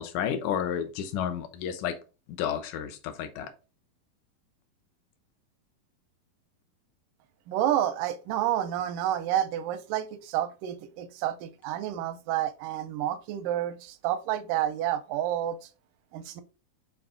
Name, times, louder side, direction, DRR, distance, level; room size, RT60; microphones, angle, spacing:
voice 1, 0.0-1.9 2.4-3.5, left 9 dB, 70° left, 1.9 m, -31 dB
voice 2, 7.5-15.6 16.1-16.4, right 11 dB, 80° right, 1.9 m, -29 dB
6.9 x 4.1 x 3.7 m
omnidirectional pair, 4.5 m